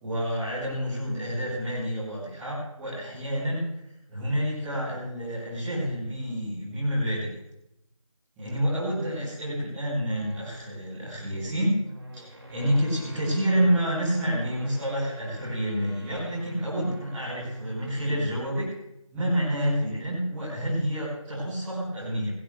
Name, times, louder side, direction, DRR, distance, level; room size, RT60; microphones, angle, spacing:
voice 1, 0.0-3.7 4.1-7.3 8.4-11.7 12.1-18.7 19.1-22.3, equal, 5° right, -15 dB, 2.3 m, -28 dB
sound 1, 10.0-18.5, right 1 dB, 45° right, 4.2 m, -45 dB
21.0 x 14.0 x 3.5 m, 0.84 s
figure-of-eight pair, 170°, 18 cm